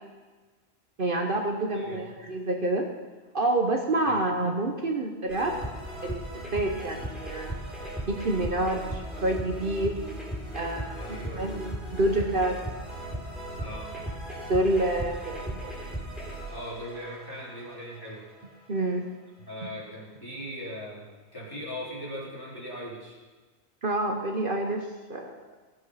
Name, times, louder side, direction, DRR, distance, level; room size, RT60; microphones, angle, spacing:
voice 1, 1.0-2.9 3.3-5.6 6.0-6.3 6.5-7.6 8.1-9.9 10.5-12.6 14.5-15.7 18.7-19.0 23.8-25.4, right 1 dB, 55° right, 3 dB, 1.2 m, -28 dB
sound 1, 5.3-18.4, right 1 dB, ahead, 4.1 m, -37 dB
voice 2, 10.9-11.5 13.6-13.9 16.5-18.3 19.5-21.1 21.3-23.2, equal, 20° left, -7 dB, 4.1 m, -39 dB
17.0 x 8.0 x 5.7 m, 1.4 s
omnidirectional pair, 1.1 m